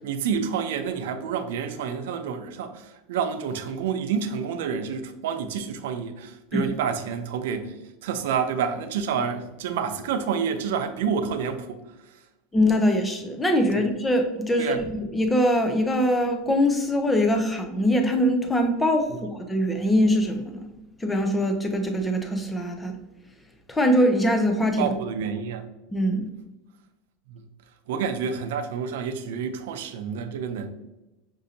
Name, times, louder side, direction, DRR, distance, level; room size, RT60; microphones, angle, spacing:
voice 1, 0.0-12.2 13.7-13.8 14.6-14.8 19.1-19.3 24.8-25.7 27.3-27.5 27.9-30.7, right 6 dB, 80° right, 0.5 m, -29 dB
voice 2, 12.5-20.7 21.0-23.0 23.7-24.9 25.9-26.3, equal, 10° left, 0.5 m, -23 dB
6.2 x 2.6 x 2.7 m
supercardioid pair, 165°, 0 cm